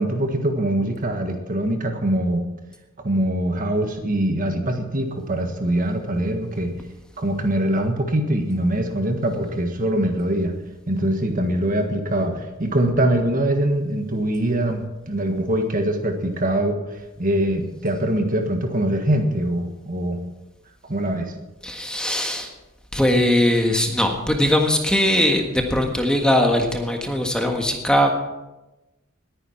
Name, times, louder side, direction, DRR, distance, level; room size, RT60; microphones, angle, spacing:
voice 1, 0.0-2.4 3.0-6.7 7.2-10.5 10.9-16.8 17.2-20.2 20.8-21.3, right 1 dB, 40° right, 5 dB, 1.6 m, -23 dB
voice 2, 21.6-22.5 22.9-28.1, left 1 dB, 5° left, 2 dB, 1.5 m, -20 dB
20.0 x 9.8 x 4.5 m, 1.0 s
head